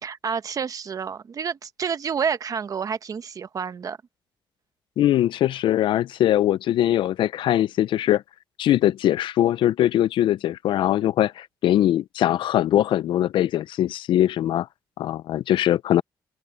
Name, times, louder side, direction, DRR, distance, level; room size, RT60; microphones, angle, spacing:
voice 1, 0.0-4.0, right 6 dB, 45° right, 1.1 m, -29 dB
voice 2, 5.0-8.2 8.6-14.7 15.0-16.0, left 12 dB, 80° left, 0.4 m, -21 dB
open air
cardioid pair, 120°, 8 cm